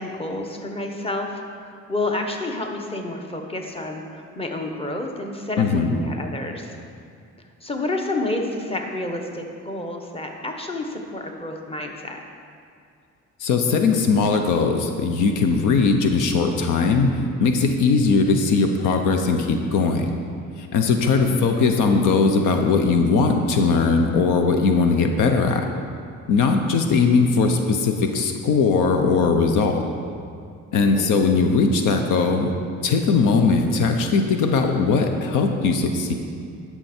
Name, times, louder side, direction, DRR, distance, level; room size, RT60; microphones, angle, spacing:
voice 1, 0.0-6.7 7.6-12.2 21.2-21.4 30.8-31.1, left 2 dB, 20° left, 3 dB, 1.1 m, -29 dB
voice 2, 5.6-6.0 13.4-17.1 17.4-20.1 20.6-25.7 26.3-29.8 30.7-32.5 32.8-36.1, left 4 dB, 90° left, 5 dB, 0.8 m, -19 dB
11.0 x 6.0 x 4.4 m, 2.3 s
cardioid pair, 90°, 30 cm